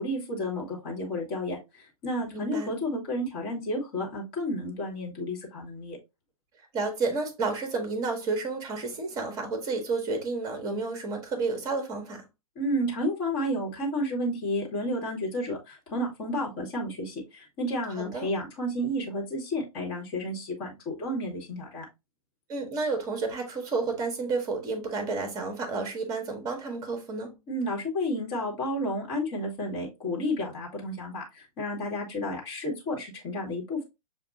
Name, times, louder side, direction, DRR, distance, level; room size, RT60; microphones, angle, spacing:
voice 1, 0.0-6.0 12.5-21.8 27.5-33.8, equal, 30° left, 1.5 m, -31 dB
voice 2, 2.3-2.7 6.7-12.2 18.0-18.3 22.5-27.3, right 3 dB, 20° right, 1.1 m, -31 dB
7.0 x 2.3 x 2.5 m
figure-of-eight pair, 115°, 19 cm